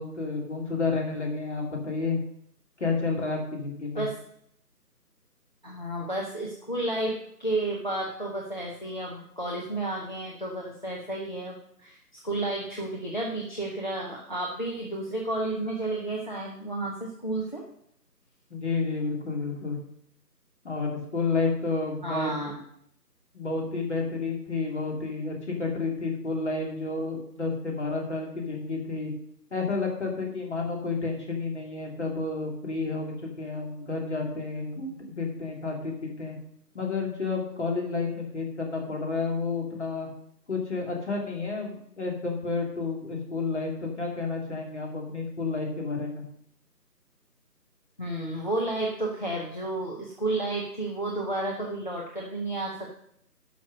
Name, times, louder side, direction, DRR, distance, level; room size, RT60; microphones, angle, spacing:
voice 1, 0.0-2.2 2.8-4.1 18.5-19.8 20.6-22.5 23.3-29.1 29.5-36.4 36.7-40.1 40.5-46.3, left 4 dB, 45° left, 0 dB, 2.8 m, -30 dB
voice 2, 5.6-12.0 12.2-17.6 22.0-22.6 48.0-53.0, right 2 dB, 30° left, -2 dB, 1.0 m, -31 dB
11.0 x 6.0 x 6.4 m, 0.70 s
figure-of-eight pair, 165°, 49 cm